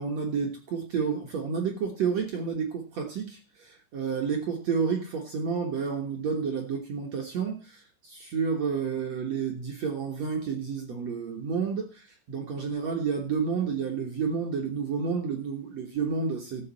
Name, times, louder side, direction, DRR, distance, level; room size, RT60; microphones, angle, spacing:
voice 1, 0.0-16.7, right 6 dB, 70° right, 1.6 m, -30 dB
17.0 x 7.9 x 4.1 m
omnidirectional pair, 5.2 m